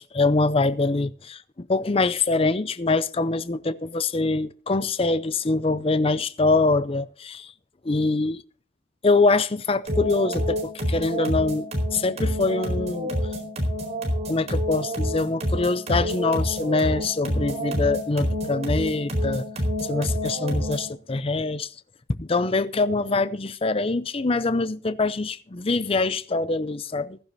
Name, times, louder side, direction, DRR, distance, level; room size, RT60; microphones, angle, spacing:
voice 1, 0.0-7.5 7.8-8.4 9.0-13.1 14.3-19.4 19.8-21.8 22.1-27.2, left 3 dB, 30° left, 0.5 m, -24 dB
sound 1, 9.9-20.9, equal, 30° right, 4.2 m, -27 dB
15.5 x 15.0 x 2.7 m
head